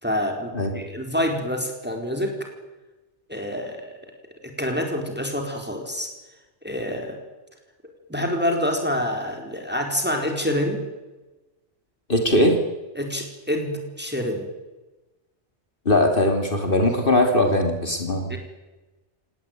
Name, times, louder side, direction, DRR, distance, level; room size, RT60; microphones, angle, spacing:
voice 1, 0.0-2.5 3.3-4.0 4.4-6.1 6.6-7.2 8.1-10.8 12.9-14.5 18.3-18.4, left 1 dB, 10° right, 3 dB, 4.4 m, -27 dB
voice 2, 12.1-12.6 15.8-18.3, left 1 dB, 50° left, 4 dB, 3.1 m, -20 dB
29.5 x 18.5 x 9.2 m, 1.1 s
omnidirectional pair, 1.2 m